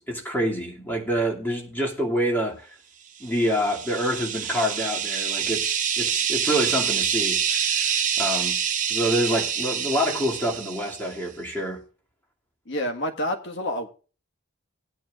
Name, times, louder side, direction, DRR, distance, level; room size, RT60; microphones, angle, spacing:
voice 1, 0.0-2.7 3.2-7.9 8.2-8.6 8.9-11.8, equal, 10° left, 2.5 m, -27 dB
sound 1, 3.3-11.1, right 8 dB, 40° right, 1.0 m, -26 dB
voice 2, 12.7-13.9, equal, 55° left, 1.6 m, -28 dB
19.0 x 9.2 x 2.4 m
head